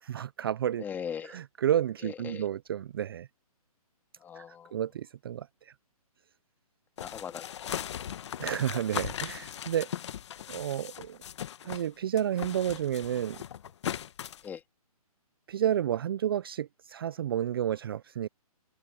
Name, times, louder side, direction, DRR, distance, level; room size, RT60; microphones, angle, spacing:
voice 1, 0.0-0.8 1.3-3.3 4.4-5.7 8.4-9.9 10.5-11.2 11.6-13.4 15.5-18.3, right 10 dB, 40° right, 0.4 m, -31 dB
voice 2, 0.8-1.4 2.0-2.5 4.2-4.8 7.0-8.2 10.4-10.5 14.4-14.6, left 8 dB, 10° left, 1.8 m, -41 dB
sound 1, 7.0-11.9 12.2-14.5, left 10 dB, 50° left, 1.2 m, -38 dB
open air
hypercardioid pair, 155°, 19 cm